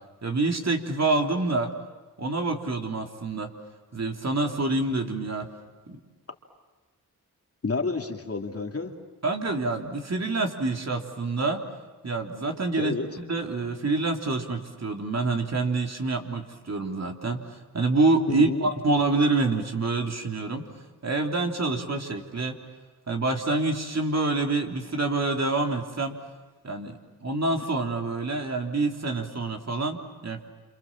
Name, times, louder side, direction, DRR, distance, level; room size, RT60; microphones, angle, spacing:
voice 1, 0.2-1.7 2.2-3.5 3.9-5.5 5.9-6.0 9.2-11.6 12.0-20.6 21.0-22.5 23.1-26.1 26.6-30.4, right 3 dB, 45° right, 2 dB, 3.5 m, -27 dB
voice 2, 7.6-8.9 12.8-13.1 18.3-18.7, left 4 dB, 40° left, 3 dB, 3.0 m, -29 dB
28.0 x 27.5 x 7.5 m, 1.3 s
cardioid pair, 55°, 37 cm